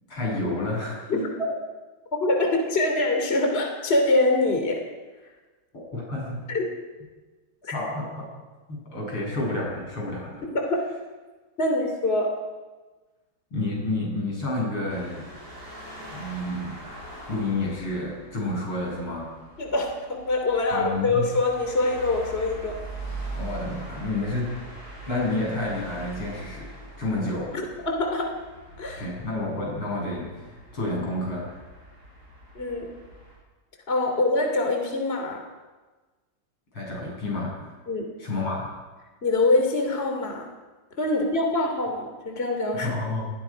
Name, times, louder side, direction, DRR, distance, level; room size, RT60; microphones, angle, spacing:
voice 1, 0.1-1.1 5.9-6.4 7.7-8.3 8.7-10.4 13.5-15.3 16.0-16.8 17.3-19.3 20.7-21.2 23.4-24.6 25.1-26.7 27.0-27.5 29.0-31.6 36.7-37.7 38.2-38.7 42.7-43.3, left 2 dB, 75° left, -3 dB, 9.0 m, -30 dB
voice 2, 1.1-1.5 2.2-4.8 6.5-6.7 7.6-7.7 10.5-10.8 11.6-12.3 19.6-22.8 27.5-28.3 28.8-29.1 32.5-32.9 33.9-35.4 37.9-38.1 39.2-40.5 41.0-42.9, left 2 dB, 30° left, 3 dB, 3.0 m, -24 dB
sound 1, 14.9-33.4, right 2 dB, 35° right, 8.1 m, -42 dB
28.5 x 21.5 x 5.2 m, 1.3 s
omnidirectional pair, 2.4 m